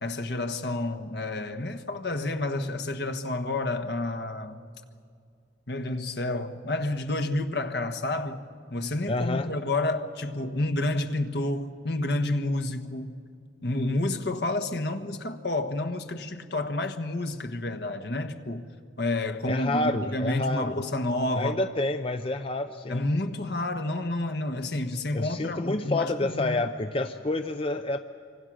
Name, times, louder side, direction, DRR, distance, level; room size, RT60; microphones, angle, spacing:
voice 1, 0.0-4.6 5.7-8.4 8.7-13.2 13.6-18.7 19.0-21.6 22.9-26.6, left 2 dB, 60° left, 1.3 m, -29 dB
voice 2, 9.1-9.5 19.5-20.8 21.4-23.1 25.1-28.0, left 2 dB, 30° left, 0.6 m, -28 dB
26.5 x 25.0 x 6.3 m
head